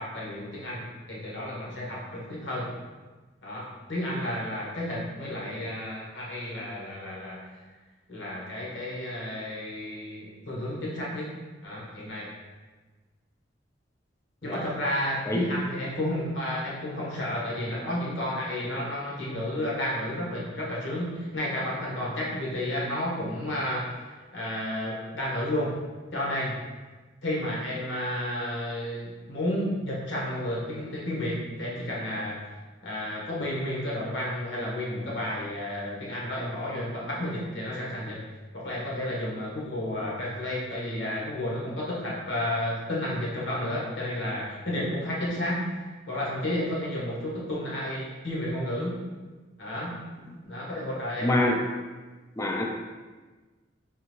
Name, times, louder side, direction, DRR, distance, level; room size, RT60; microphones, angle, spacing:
voice 1, 0.0-2.7 3.4-7.5 8.1-11.3 11.6-12.3 14.4-23.9 24.3-25.7 26.1-26.6 27.2-32.4 32.8-38.2 38.5-45.7 46.1-49.0 49.6-50.0 50.4-51.3, left 1 dB, 75° left, -5 dB, 1.1 m, -31 dB
voice 2, 51.2-51.6 52.4-52.6, left 1 dB, 15° left, 1 dB, 0.3 m, -26 dB
3.7 x 2.5 x 3.0 m, 1.3 s
head